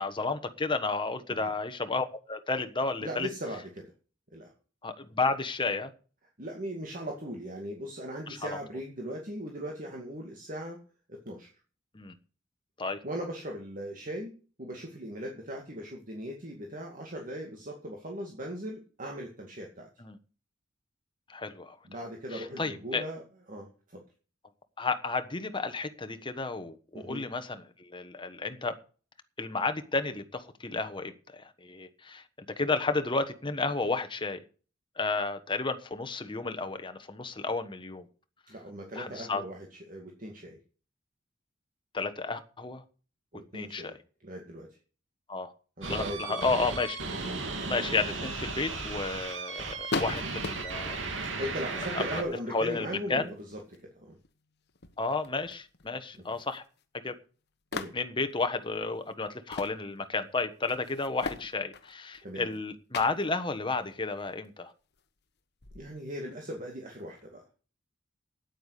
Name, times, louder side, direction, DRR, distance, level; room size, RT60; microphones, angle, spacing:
voice 1, 0.0-3.3 4.8-5.9 8.3-8.6 11.9-12.1 12.8-13.0 20.0-20.2 21.3-21.8 22.3-23.0 24.8-28.7 29.4-32.2 32.6-34.4 35.0-38.0 38.9-39.4 41.9-42.8 43.5-43.9 45.3-45.5 45.9-47.0 47.7-51.0 51.9-52.2 52.5-53.3 55.0-56.6 57.0-57.1 57.9-64.7, left 3 dB, 25° left, 8 dB, 1.3 m, -32 dB
voice 2, 3.0-3.9 4.3-4.5 6.4-10.8 11.1-11.5 13.0-19.9 21.8-24.0 26.9-27.2 38.5-40.6 43.3-44.0 44.2-44.7 45.8-46.5 47.2-47.4 51.2-54.2 56.2-56.3 57.7-57.9 62.2-62.5 65.7-67.4, equal, 45° right, 1 dB, 2.4 m, -39 dB
sound 1, 45.8-52.2, right 3 dB, 75° right, 3.0 m, -35 dB
sound 2, 49.9-51.0 52.0-52.8 53.2-53.8 54.2-54.3 54.7-55.9 56.1-56.8 57.7-58.3 59.3-59.8 60.2-60.3 60.7-62.6 62.9-63.3 63.8-64.5 64.9-65.0 65.6-67.3, left 4 dB, 60° left, 1.1 m, -39 dB
9.3 x 9.1 x 8.3 m, 0.38 s
head